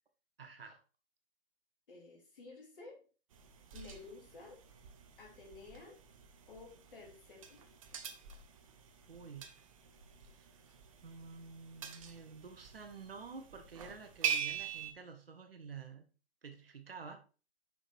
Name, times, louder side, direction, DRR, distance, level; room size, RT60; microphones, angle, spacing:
voice 1, 0.4-0.8 9.1-9.5 10.2-10.6 11.0-16.1 16.4-17.2, right 5 dB, 60° right, 6 dB, 1.3 m, -50 dB
voice 2, 1.9-3.0 3.7-4.6 5.2-6.0 6.5-7.7, left 3 dB, 55° left, 0 dB, 2.7 m, -53 dB
sound 1, 3.3-14.9, right 8 dB, 30° right, 0.7 m, -44 dB
6.0 x 5.1 x 4.1 m, 0.35 s
figure-of-eight pair, 130°, 33 cm